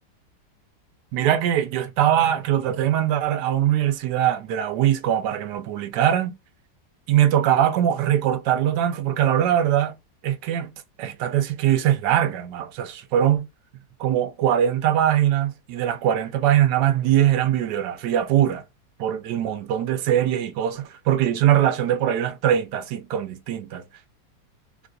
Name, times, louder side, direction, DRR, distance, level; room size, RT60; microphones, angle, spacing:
voice 1, 1.1-6.3 7.1-10.0 10.2-10.7 11.0-13.5 14.0-18.6 19.0-23.8, right 11 dB, 75° right, 1.2 m, -22 dB
3.6 x 2.4 x 2.6 m
omnidirectional pair, 1.9 m